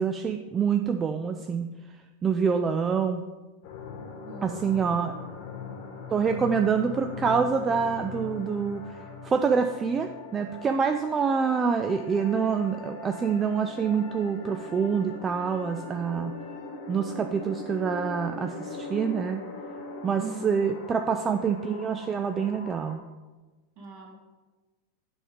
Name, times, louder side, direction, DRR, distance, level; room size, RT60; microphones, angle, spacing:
voice 1, 0.0-1.7 2.2-3.2 4.4-5.1 6.1-16.3 16.9-19.4 20.0-23.0, right 6 dB, 20° right, 6 dB, 0.3 m, -26 dB
sound 1, 3.6-23.0, left 4 dB, 50° left, 1.1 m, -41 dB
voice 2, 4.3-4.8 5.0-5.3 20.2-20.6 23.8-24.1, right 4 dB, 45° right, -1 dB, 2.0 m, -41 dB
8.4 x 3.5 x 5.2 m, 1.2 s
figure-of-eight pair, 90°, 0 cm